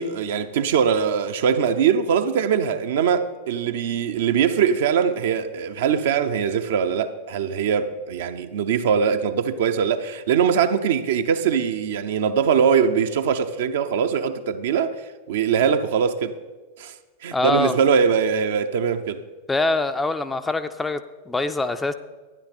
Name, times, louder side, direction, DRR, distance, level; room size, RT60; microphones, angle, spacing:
voice 1, 0.0-14.9 15.3-16.3 16.8-16.9 17.2-19.2, right 7 dB, 55° right, 0.7 m, -22 dB
voice 2, 17.3-17.7 19.5-21.9, left 2 dB, 10° left, 0.5 m, -24 dB
12.0 x 10.0 x 4.2 m
figure-of-eight pair, 90°, 0 cm